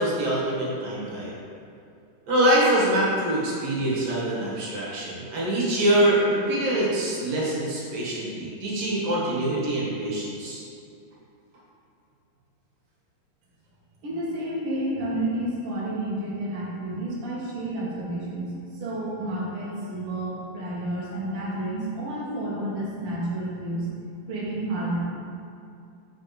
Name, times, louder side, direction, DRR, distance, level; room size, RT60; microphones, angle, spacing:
voice 1, 0.0-1.3 2.3-10.6, right 1 dB, 55° right, -7 dB, 2.0 m, -24 dB
voice 2, 14.0-18.5 18.8-23.9 24.3-25.0, right 1 dB, 75° right, -7 dB, 1.3 m, -30 dB
10.0 x 5.1 x 3.2 m, 2.5 s
omnidirectional pair, 4.7 m